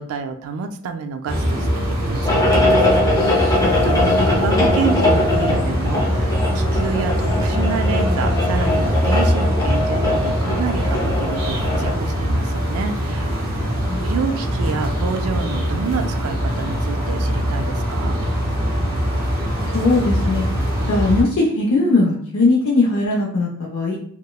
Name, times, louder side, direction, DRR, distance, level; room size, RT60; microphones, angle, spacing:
voice 1, 0.0-3.4 3.6-13.5 14.0-18.2, right 5 dB, 75° right, 7 dB, 0.3 m, -28 dB
sound 1, 1.3-21.2, equal, 45° right, 0.7 m, -22 dB
sound 2, 2.2-11.9, left 2 dB, 15° left, 0.5 m, -21 dB
voice 2, 13.9-14.3 19.7-20.5 20.9-24.0, left 3 dB, 70° left, -3 dB, 0.5 m, -19 dB
2.9 x 2.0 x 2.2 m, 0.62 s
head